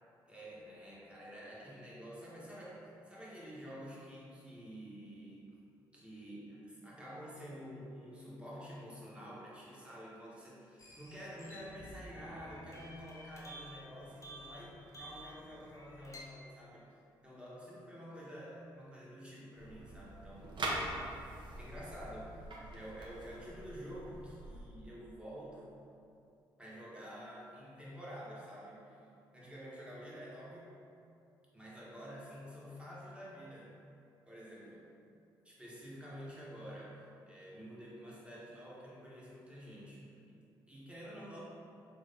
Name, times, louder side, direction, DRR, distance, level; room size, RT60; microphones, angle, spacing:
voice 1, 0.3-5.6 5.9-16.9 17.2-20.6 21.3-25.8 26.6-29.0 29.3-30.7 31.5-33.8 34.2-34.9 35.4-37.0 37.3-41.4, equal, 10° right, -7 dB, 1.2 m, -49 dB
sound 1, 10.8-16.2, equal, 30° left, 0.7 m, -52 dB
sound 2, 19.6-24.6, right 1 dB, 50° right, 0.7 m, -43 dB
3.3 x 2.6 x 3.3 m, 2.6 s
hypercardioid pair, 45°, 11 cm